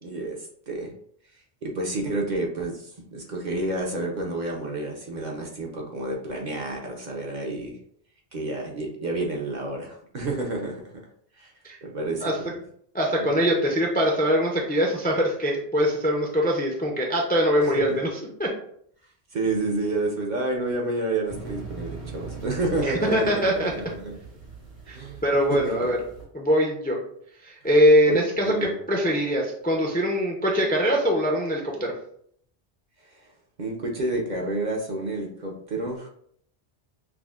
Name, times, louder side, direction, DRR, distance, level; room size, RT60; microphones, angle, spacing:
voice 1, 0.0-0.9 1.6-7.8 8.3-11.0 11.4-11.5 11.8-12.5 13.2-13.3 17.6-18.0 19.3-24.1 24.9-25.2 25.5-25.9 28.1-28.8 33.0-33.2 33.6-36.1, right 2 dB, 50° right, 0 dB, 0.7 m, -30 dB
voice 2, 12.9-18.1 18.4-18.5 22.8-23.7 24.9-25.0 25.2-26.0 26.3-27.0 27.4-31.9, equal, 15° left, 0 dB, 0.4 m, -22 dB
sound 1, 21.3-26.2, right 4 dB, 75° right, 1.7 m, -41 dB
5.9 x 2.1 x 2.4 m, 0.64 s
omnidirectional pair, 1.1 m